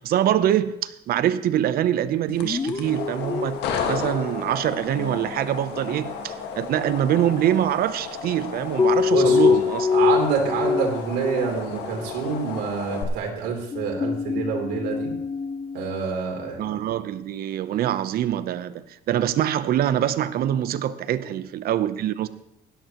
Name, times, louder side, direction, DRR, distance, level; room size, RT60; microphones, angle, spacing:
voice 1, 0.0-9.9 16.6-22.3, right 11 dB, 65° right, 0.7 m, -24 dB
sound 1, 2.3-13.0, left 6 dB, 80° left, 1.7 m, -33 dB
sound 2, 2.3-4.6 4.8-5.5 8.8-11.7 11.9-12.1 13.7-16.5, left 6 dB, 20° left, 0.5 m, -25 dB
voice 2, 9.1-9.5 9.9-15.1 15.7-16.6, right 5 dB, 85° right, 3.2 m, -27 dB
17.0 x 11.5 x 3.0 m
cardioid pair, 110°, 17 cm